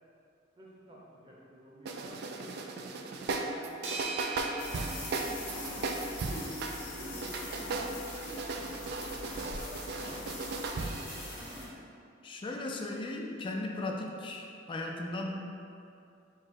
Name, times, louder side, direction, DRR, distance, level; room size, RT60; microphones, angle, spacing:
voice 1, 0.6-4.1 4.5-6.5 6.8-7.7 8.6-10.6, equal, 25° right, -5 dB, 0.8 m, -51 dB
sound 1, 1.9-6.8 7.1-11.7, right 3 dB, 60° right, 0.3 m, -37 dB
sound 2, 3.8-6.3, right 3 dB, 80° right, 0.9 m, -42 dB
sound 3, 4.6-11.7, left 1 dB, 65° left, 1.1 m, -42 dB
voice 2, 12.2-15.6, left 2 dB, 25° left, 1 dB, 0.3 m, -37 dB
4.7 x 2.1 x 4.5 m, 2.5 s
head